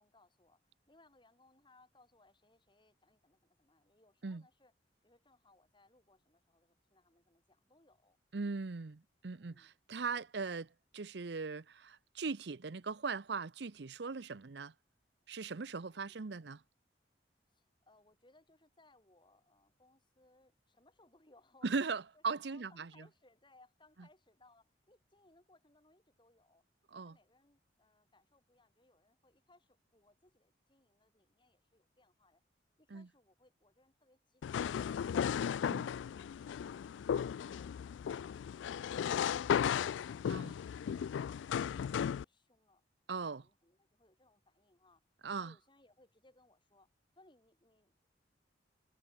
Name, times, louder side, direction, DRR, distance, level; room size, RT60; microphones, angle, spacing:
voice 1, 0.0-4.7 5.0-8.2 9.4-9.8 15.7-16.2 17.5-32.4 32.8-38.3 40.0-42.8 43.2-45.0 45.3-46.9 47.1-48.1, left 2 dB, 25° left, 6.8 m, -68 dB
voice 2, 8.3-14.7 15.3-16.6 21.6-22.9 26.9-27.2 32.9-33.1 35.7-35.9 40.3-40.5 43.1-43.5 45.2-45.5, right 4 dB, 65° right, 0.7 m, -39 dB
sound 1, 34.4-42.2, left 8 dB, 90° left, 0.3 m, -35 dB
head